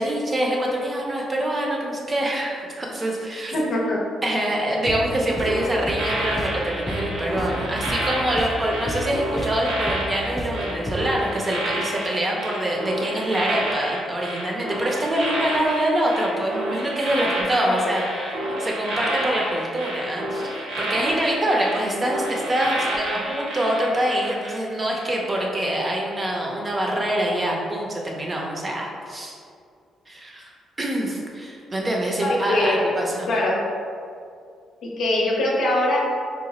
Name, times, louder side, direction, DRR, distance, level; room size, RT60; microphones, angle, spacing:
voice 1, 0.0-3.5 4.2-18.0 18.4-29.3 30.1-30.5 30.8-33.3, right 1 dB, 25° right, -2 dB, 0.6 m, -25 dB
voice 2, 3.5-4.0 17.6-17.9 32.2-33.0 33.3-33.6 34.8-36.0, left 1 dB, 70° left, -3 dB, 0.7 m, -22 dB
sound 1, 4.8-11.3, equal, 15° left, 0.3 m, -32 dB
sound 2, 5.4-24.6 24.9-25.2, right 1 dB, 85° right, 0.7 m, -30 dB
2.9 x 2.1 x 4.1 m, 2.3 s
cardioid pair, 90°, 0 cm